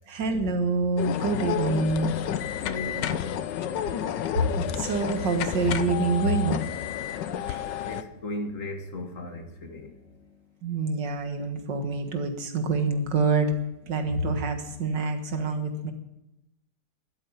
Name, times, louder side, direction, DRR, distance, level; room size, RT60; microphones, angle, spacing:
voice 1, 0.1-2.2 4.4-4.5 4.8-6.6 7.5-7.6 10.6-13.5 13.9-15.9, right 3 dB, 85° right, 6 dB, 2.3 m, -26 dB
sound 1, 1.0-8.0, left 10 dB, 85° left, 1.5 m, -30 dB
voice 2, 2.5-3.4 7.8-10.2 13.9-14.1, left 2 dB, 50° left, 5 dB, 2.0 m, -37 dB
12.0 x 8.3 x 9.8 m, 0.91 s
omnidirectional pair, 1.9 m